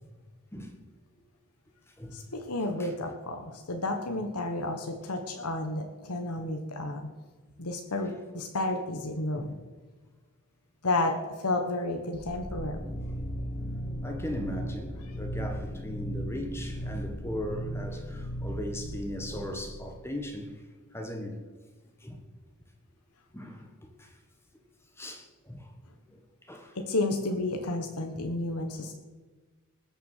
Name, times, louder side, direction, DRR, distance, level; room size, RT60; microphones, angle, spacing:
voice 1, 2.1-7.1 7.6-9.6 10.8-12.8 26.7-28.9, left 2 dB, 90° left, 4 dB, 1.4 m, -31 dB
sound 1, 12.1-20.0, equal, 30° left, 1.5 m, -37 dB
voice 2, 14.0-20.5 20.9-21.4 22.0-22.2 23.3-24.1 25.0-25.7 26.1-26.2 26.5-26.7 28.2-28.3, equal, 10° left, 3 dB, 1.5 m, -38 dB
20.0 x 6.9 x 6.7 m, 1.3 s
head